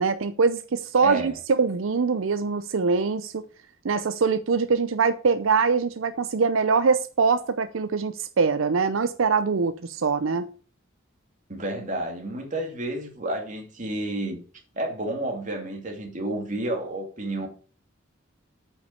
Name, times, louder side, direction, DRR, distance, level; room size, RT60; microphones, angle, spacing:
voice 1, 0.0-3.4 3.8-10.5, right 5 dB, 80° right, 0.5 m, -23 dB
voice 2, 1.0-1.4 11.5-14.4 14.7-17.5, right 1 dB, 40° right, 2.6 m, -30 dB
8.5 x 5.9 x 6.6 m
head